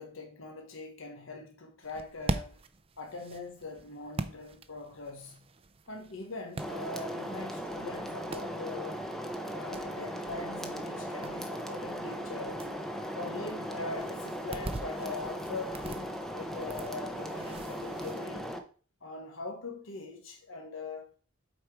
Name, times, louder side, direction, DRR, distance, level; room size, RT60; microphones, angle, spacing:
voice 1, 0.0-2.6 3.0-5.5 5.9-9.1 9.5-12.7 13.1-18.5 19.0-21.1, left 3 dB, 80° left, 1.3 m, -42 dB
sound 1, 1.8-18.2, right 2 dB, 30° right, 0.5 m, -43 dB
sound 2, 6.6-18.6, equal, ahead, 0.7 m, -38 dB
8.0 x 4.4 x 4.7 m
head